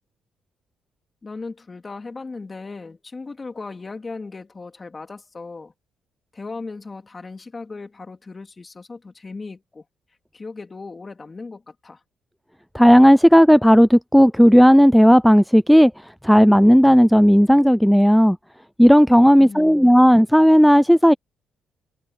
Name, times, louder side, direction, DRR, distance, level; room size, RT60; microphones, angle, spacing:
voice 1, 1.2-5.7 6.3-9.8 10.3-12.0 19.4-19.9, left 3 dB, 30° left, 3.0 m, -37 dB
voice 2, 12.7-18.4 18.8-21.1, equal, ahead, 0.4 m, -13 dB
cardioid pair, 90°, 0 cm